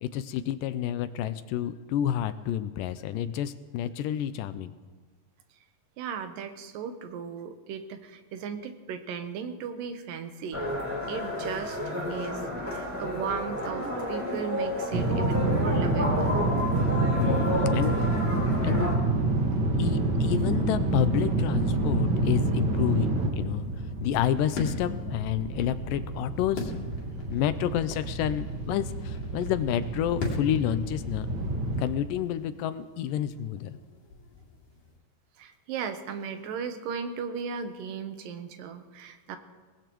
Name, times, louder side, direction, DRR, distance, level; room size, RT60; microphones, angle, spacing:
voice 1, 0.0-4.7 17.2-18.3 18.6-18.9 19.8-23.7 24.0-26.7 27.3-31.3 31.8-33.8, left 11 dB, 80° left, 12 dB, 2.1 m, -29 dB
voice 2, 6.0-10.7 11.1-16.4 35.4-39.4, right 6 dB, 80° right, 8 dB, 2.6 m, -36 dB
sound 1, 10.5-19.0, left 1 dB, 5° right, 3.1 m, -31 dB
sound 2, 14.9-31.8, right 2 dB, 45° right, 1.7 m, -28 dB
sound 3, 23.2-35.0, left 3 dB, 60° left, 3.8 m, -41 dB
23.0 x 19.0 x 3.1 m, 1.4 s
omnidirectional pair, 4.0 m